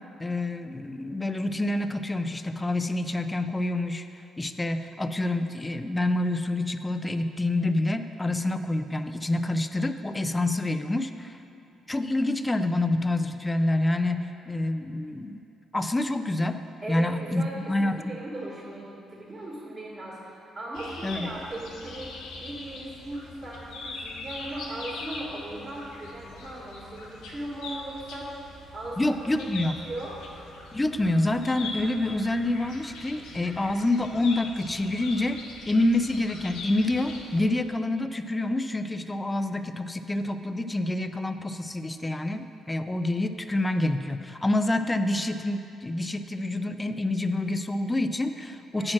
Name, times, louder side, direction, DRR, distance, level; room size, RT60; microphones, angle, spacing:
voice 1, 0.2-4.0 4.4-11.4 11.9-15.4 15.7-18.0 21.0-21.3 29.0-29.8 30.7-35.4 35.7-48.9, left 2 dB, 15° left, 9 dB, 0.4 m, -27 dB
voice 2, 16.8-28.3 28.7-30.2 48.7-48.9, right 1 dB, 35° right, -6 dB, 1.8 m, -38 dB
sound 1, 20.7-37.4, left 3 dB, 90° left, 0.9 m, -42 dB
8.7 x 4.2 x 6.1 m, 2.8 s
cardioid pair, 90°, 0 cm